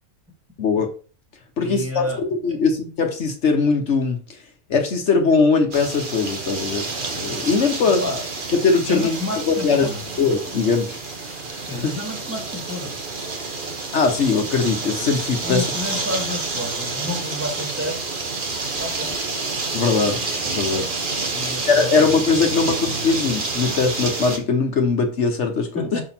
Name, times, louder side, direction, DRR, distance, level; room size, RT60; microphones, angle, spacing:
voice 1, 0.6-0.9 1.6-2.0 2.4-4.2 4.7-8.0 8.6-9.2 9.5-9.9 10.2-11.0 11.5-11.9 13.9-15.6 19.7-20.9 21.7-26.0, left 4 dB, 65° left, 4 dB, 1.3 m, -20 dB
voice 2, 1.6-2.2 8.0-8.2 8.9-10.0 11.6-13.0 15.4-18.0 18.8-19.2 21.3-22.2 22.5-23.0 25.7-26.0, left 2 dB, 10° right, 0 dB, 1.6 m, -30 dB
sound 1, 5.7-24.4, right 3 dB, 45° right, 1.2 m, -28 dB
6.0 x 4.9 x 4.3 m, 0.37 s
omnidirectional pair, 1.3 m